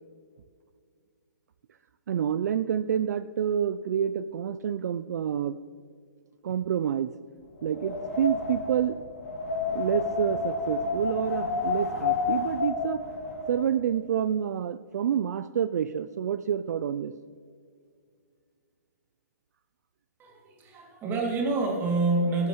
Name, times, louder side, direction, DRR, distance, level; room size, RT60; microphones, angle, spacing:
voice 1, 2.1-5.6 6.4-7.1 7.6-9.0 9.7-13.0 13.5-17.1, right 9 dB, 65° right, 13 dB, 0.3 m, -28 dB
Wind, 7.6-13.6, left 4 dB, 55° left, 2.3 m, -30 dB
voice 2, 20.2-22.5, right 3 dB, 20° right, 0 dB, 2.2 m, -27 dB
17.0 x 8.3 x 3.0 m, 2.1 s
hypercardioid pair, 135°, 10 cm